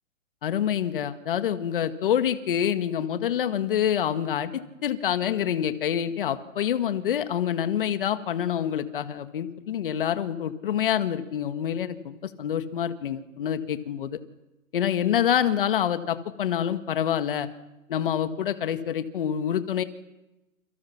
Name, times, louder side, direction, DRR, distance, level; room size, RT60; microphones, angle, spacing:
voice 1, 0.4-14.2 14.7-17.5 17.9-19.8, left 9 dB, 40° left, 10 dB, 1.8 m, -27 dB
29.0 x 29.0 x 5.9 m, 0.97 s
hypercardioid pair, 160°, 42 cm